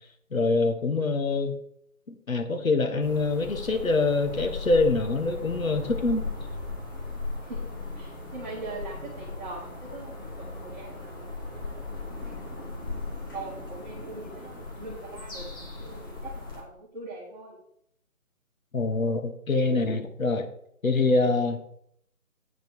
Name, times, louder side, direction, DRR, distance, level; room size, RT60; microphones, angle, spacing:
voice 1, 0.3-1.6 2.1-6.3 18.7-20.5 20.8-21.6, left 3 dB, 65° left, 1.5 m, -25 dB
sound 1, 3.0-16.6, left 3 dB, 15° left, 1.2 m, -37 dB
voice 2, 7.9-11.3 11.5-12.7 13.3-15.5 15.8-17.6 18.9-19.2 21.4-21.5, right 2 dB, 30° right, 2.3 m, -42 dB
8.9 x 5.5 x 4.8 m
figure-of-eight pair, 155°, 43 cm